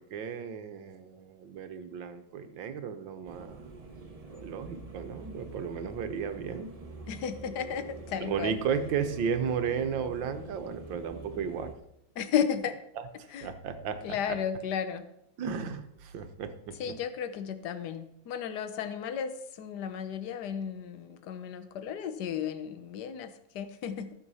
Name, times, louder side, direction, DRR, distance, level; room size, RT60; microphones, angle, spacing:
voice 1, 0.0-3.6 4.4-6.7 8.2-11.7 13.0-14.4 15.4-16.9, right 7 dB, 70° right, 9 dB, 1.6 m, -34 dB
sound 1, 3.2-11.7, right 2 dB, 20° right, 1.0 m, -45 dB
voice 2, 7.1-8.6 12.2-12.7 13.3-13.5 14.0-15.1 16.8-24.1, left 8 dB, 60° left, 11 dB, 1.4 m, -34 dB
14.0 x 6.9 x 5.5 m, 0.79 s
omnidirectional pair, 2.2 m